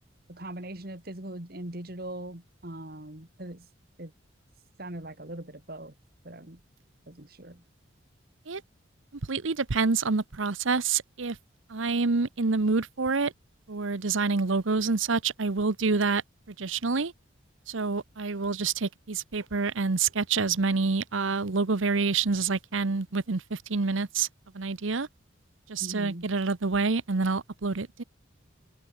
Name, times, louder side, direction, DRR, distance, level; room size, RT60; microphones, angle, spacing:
voice 1, 0.3-3.7 4.0-4.1 4.8-5.9 6.2-6.6 7.1-7.6 25.8-26.3, right 1 dB, 50° right, 2.4 m, -40 dB
voice 2, 9.3-11.4 11.7-13.3 13.7-16.2 16.5-17.1 17.7-24.3 24.5-25.1 25.7-28.0, right 4 dB, 80° right, 0.9 m, -27 dB
head